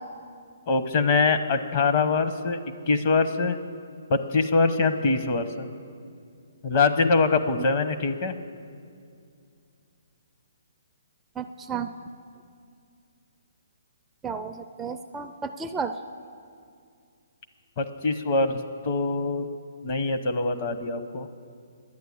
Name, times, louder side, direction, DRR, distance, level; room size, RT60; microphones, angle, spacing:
voice 1, 0.7-2.6 2.9-3.6 4.1-5.7 6.6-8.4 17.8-19.5 19.8-21.3, left 3 dB, 35° left, 7 dB, 0.8 m, -23 dB
voice 2, 11.4-11.9 14.2-16.0, right 5 dB, 10° right, 6 dB, 0.4 m, -32 dB
11.0 x 9.1 x 8.5 m, 2.3 s
hypercardioid pair, 155°, 0 cm